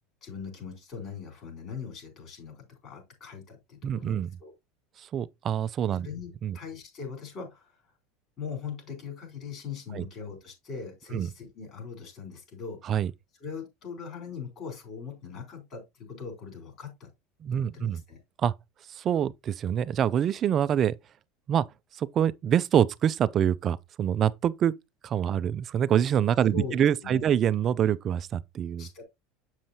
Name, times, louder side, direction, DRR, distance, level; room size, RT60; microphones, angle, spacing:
voice 1, 0.2-4.5 6.0-7.8 8.4-12.8 13.4-17.1 17.5-18.2 26.5-26.8 27.0-27.3 28.8-29.0, left 6 dB, 40° left, 4.0 m, -40 dB
voice 2, 3.8-4.3 5.1-6.1 6.4-6.6 9.9-10.1 11.1-11.3 12.9-13.1 17.4-18.0 18.4-18.5 18.9-20.9 21.5-21.7 22.0-24.7 25.0-28.9, right 9 dB, 35° right, 0.4 m, -25 dB
7.5 x 6.4 x 2.8 m
supercardioid pair, 130°, 0 cm